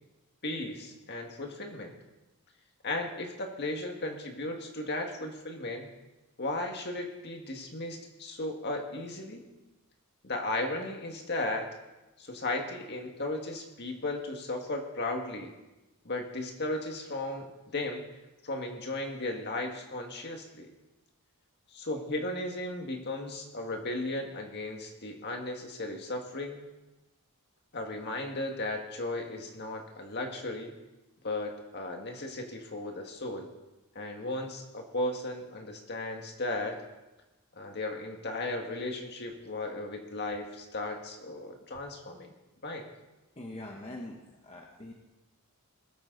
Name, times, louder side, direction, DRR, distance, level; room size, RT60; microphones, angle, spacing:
voice 1, 0.4-1.9 2.8-5.9 6.4-9.4 10.2-11.7 12.2-15.5 16.0-18.0 18.4-20.7 21.7-26.6 27.7-30.7 31.2-33.5 34.0-36.8 37.5-42.3 42.6-42.9, left 2 dB, 50° left, 3 dB, 1.8 m, -35 dB
voice 2, 43.4-44.9, left 1 dB, 30° left, 0 dB, 1.1 m, -43 dB
20.5 x 8.8 x 3.9 m, 1.0 s
head